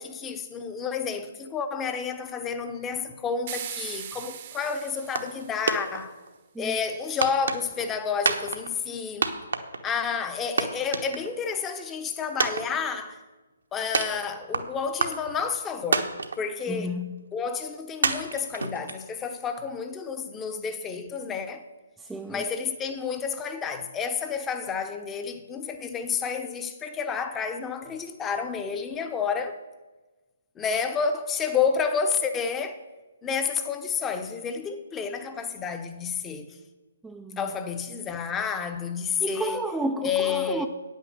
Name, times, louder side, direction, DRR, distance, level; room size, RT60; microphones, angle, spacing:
voice 1, 0.0-6.1 6.6-9.3 9.8-13.2 13.7-16.9 17.3-21.6 22.3-29.6 30.6-32.8 33.2-36.6 37.4-39.6 40.0-40.7, left 6 dB, 15° left, 0.8 m, -30 dB
sound 1, 3.5-5.9, right 10 dB, 40° right, 0.9 m, -39 dB
sound 2, 5.2-5.4 5.7-6.4 7.2-7.9 8.3-9.0 9.2-10.0 10.3-10.4 10.6-11.6 11.8-11.9 12.4-13.2 13.9-14.6 15.0-15.6 15.9-16.6 17.0-17.1 18.0-19.3, right 4 dB, 65° right, 1.0 m, -27 dB
voice 2, 16.7-17.2 22.0-22.4 37.0-37.4 39.2-40.7, right 1 dB, 5° right, 0.4 m, -32 dB
9.2 x 9.1 x 6.4 m
figure-of-eight pair, 135°, 0 cm